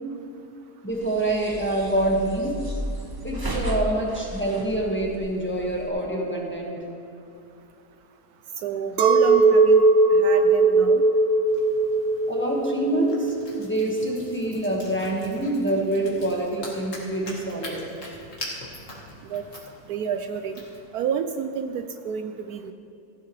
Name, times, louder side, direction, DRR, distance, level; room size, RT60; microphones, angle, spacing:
voice 1, 0.8-2.7 3.2-6.8 12.3-17.8, right 1 dB, 5° left, -2 dB, 1.4 m, -26 dB
sound 1, 0.9-5.9, equal, 20° right, 0.6 m, -34 dB
voice 2, 8.6-9.8 10.1-11.0 19.3-19.4 19.9-20.5 20.9-22.7, right 7 dB, 75° right, 8 dB, 1.0 m, -29 dB
Chink clink, 9.0-14.5, right 3 dB, 60° right, 0.7 m, -19 dB
sound 2, 11.5-20.8, left 1 dB, 50° left, 2.3 m, -43 dB
15.5 x 11.5 x 3.2 m, 2.7 s
omnidirectional pair, 1.7 m